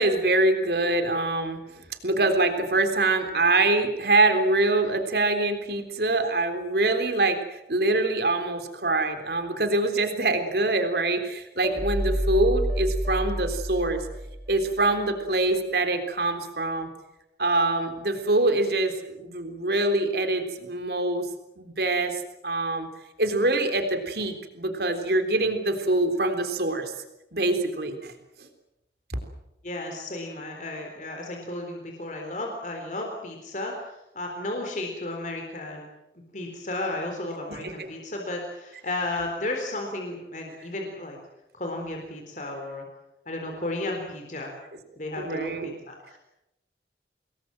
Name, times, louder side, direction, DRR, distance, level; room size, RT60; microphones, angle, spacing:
voice 1, 0.0-14.1 14.5-16.9 17.4-21.3 21.6-22.9 23.2-26.9 27.3-28.1 28.4-28.5 37.5-37.7 45.2-45.7, right 2 dB, 60° right, 7 dB, 3.7 m, -24 dB
sound 1, 11.6-14.8, equal, ahead, 2.3 m, -29 dB
voice 2, 29.6-35.8 36.3-41.2 41.5-42.9 43.3-44.5 45.0-46.2, left 2 dB, 45° left, 1 dB, 3.9 m, -33 dB
26.5 x 20.5 x 7.7 m, 0.90 s
head